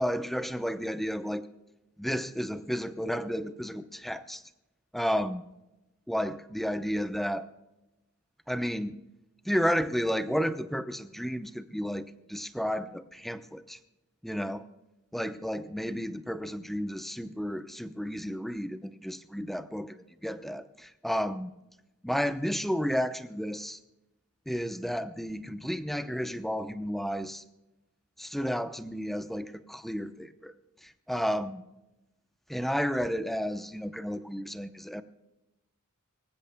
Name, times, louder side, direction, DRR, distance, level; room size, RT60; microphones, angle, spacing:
voice 1, 0.0-1.4 2.0-4.4 4.9-5.4 6.1-7.5 8.5-9.0 9.4-13.8 14.2-14.6 15.1-21.5 22.0-23.8 24.5-27.4 28.2-30.5 30.8-31.6 32.5-35.0, equal, ahead, 9 dB, 0.7 m, -32 dB
25.0 x 15.5 x 2.3 m, 0.97 s
head